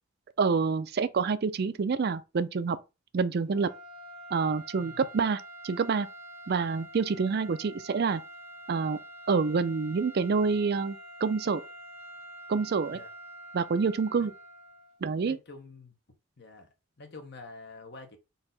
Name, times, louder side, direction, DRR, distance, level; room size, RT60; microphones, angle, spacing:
voice 1, 0.4-2.8 3.1-3.7 4.3-6.1 6.5-8.2 8.7-9.0 9.3-11.6 12.5-13.0 13.5-14.3 15.0-15.4, right 5 dB, 50° right, 0.4 m, -27 dB
sound 1, 3.5-15.0, right 1 dB, 5° right, 1.7 m, -47 dB
voice 2, 15.2-15.9 16.4-18.2, left 3 dB, 50° left, 1.0 m, -47 dB
4.0 x 2.7 x 3.9 m
head